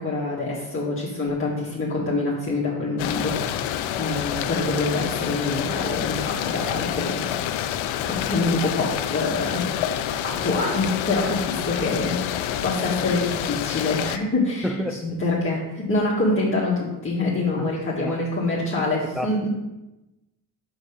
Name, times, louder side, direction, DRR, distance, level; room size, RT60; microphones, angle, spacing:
voice 1, 0.0-7.4 8.1-19.5, left 2 dB, 25° left, -6 dB, 1.8 m, -26 dB
sound 1, 3.0-14.2, left 10 dB, 70° left, 0.7 m, -28 dB
voice 2, 14.6-15.0 17.6-17.7 18.0-18.2 19.2-19.4, equal, ahead, 5 dB, 0.8 m, -29 dB
5.8 x 5.2 x 5.1 m, 1.0 s
supercardioid pair, 80°, 48 cm